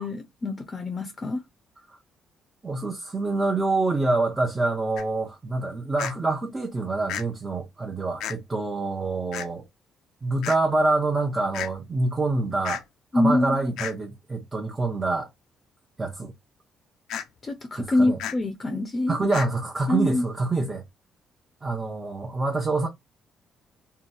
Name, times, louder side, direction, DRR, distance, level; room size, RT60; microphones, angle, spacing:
voice 1, 0.0-1.4 13.1-13.7 17.4-19.2 19.9-20.3, left 2 dB, 35° left, 0.5 m, -25 dB
voice 2, 2.6-9.6 10.2-12.8 13.1-15.3 16.0-16.3 17.8-18.2 19.1-20.8 21.6-22.9, right 2 dB, 25° right, 0.7 m, -26 dB
sound 1, 5.0-5.1 6.0-6.1 7.1-7.2 8.2-8.3 9.3-9.5 10.4-10.6 11.5-11.7 12.6-12.8 13.8-13.9 17.1-17.2 18.2-18.4 19.3-19.5, left 10 dB, 85° left, 0.4 m, -32 dB
2.8 x 2.2 x 2.6 m
cardioid pair, 85°, 0 cm